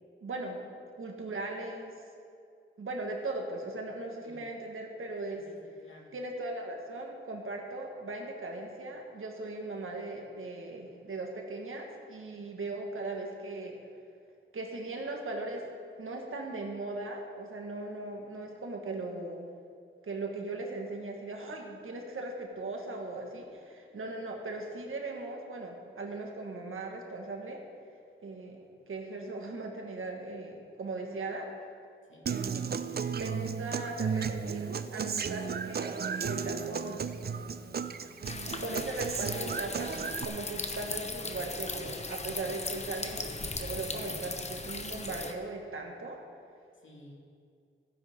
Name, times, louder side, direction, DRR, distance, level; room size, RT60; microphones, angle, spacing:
voice 1, 0.2-0.6 1.0-1.9 2.8-5.4 6.1-13.8 14.5-15.6 16.0-19.5 20.0-27.6 28.2-31.5 32.3-32.8 33.1-37.1 38.6-46.2, right 2 dB, 75° right, 1 dB, 1.7 m, -38 dB
voice 2, 5.3-6.2 32.1-32.3 42.6-42.9 46.7-47.1, left 1 dB, 65° left, -2 dB, 2.4 m, -55 dB
Human voice / Acoustic guitar, 32.3-40.2, right 6 dB, 50° right, 0.5 m, -34 dB
sound 1, 38.2-45.3, left 3 dB, 30° left, 0.9 m, -38 dB
15.5 x 9.8 x 3.7 m, 2.3 s
wide cardioid pair, 90°, 21 cm